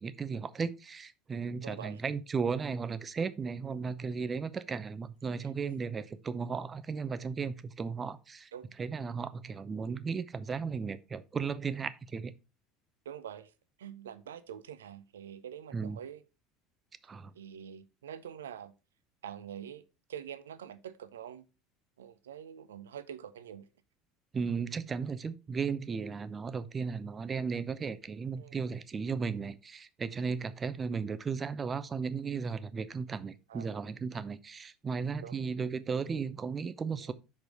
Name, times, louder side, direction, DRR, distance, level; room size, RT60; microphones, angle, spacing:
voice 1, 0.0-8.5 8.8-12.3 15.7-16.0 17.0-17.3 24.3-37.1, right 5 dB, 25° right, 0.7 m, -35 dB
voice 2, 1.6-2.0 8.5-8.7 13.0-13.5 13.8-16.2 17.3-18.7 19.2-19.8 20.1-21.5 22.0-23.7 28.4-28.6 33.5-33.7 35.2-35.4 37.0-37.1, right 9 dB, 75° right, 0.6 m, -45 dB
6.0 x 5.4 x 4.8 m
figure-of-eight pair, 70°, 0 cm